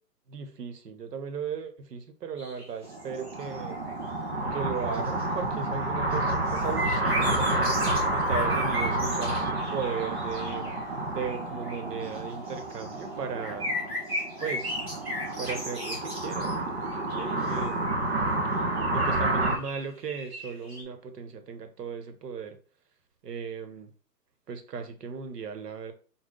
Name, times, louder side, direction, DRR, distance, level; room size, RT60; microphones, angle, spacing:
voice 1, 0.3-3.8 4.5-7.7 8.1-10.8 11.1-13.7 14.4-14.8 15.4-16.6 17.2-18.0 18.9-22.6 23.2-23.9 24.5-25.9, right 6 dB, 70° right, 7 dB, 1.1 m, -36 dB
sound 1, 2.4-4.0 4.5-5.2 5.6-10.9 11.2-11.4 11.6-13.0 13.4-16.5 16.8-17.9 18.8-20.8, left 1 dB, 15° right, 0.8 m, -37 dB
sound 2, 2.8-19.6, right 2 dB, 40° right, 0.4 m, -29 dB
5.6 x 2.3 x 3.8 m, 0.39 s
hypercardioid pair, 170°, 50 cm